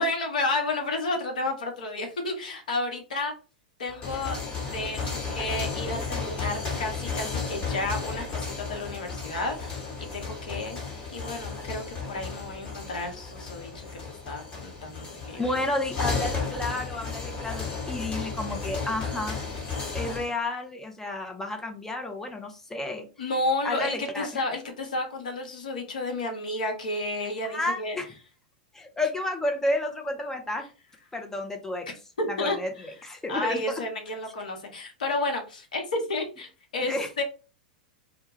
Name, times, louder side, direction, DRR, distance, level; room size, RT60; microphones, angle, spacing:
voice 1, 0.0-3.3 3.8-13.9 14.3-15.6 16.0-16.1 23.2-28.0 32.2-32.6 33.3-37.2, left 2 dB, 70° left, 3 dB, 0.8 m, -31 dB
sound 1, 3.9-20.3, left 4 dB, 25° left, 1.3 m, -34 dB
voice 2, 15.4-19.4 19.9-23.1 23.6-24.4 27.4-28.1 28.7-30.6 31.1-31.9 32.3-33.8 36.9-37.2, left 1 dB, 10° left, 3 dB, 0.6 m, -31 dB
2.2 x 2.2 x 2.9 m, 0.35 s
figure-of-eight pair, 95°, 5 cm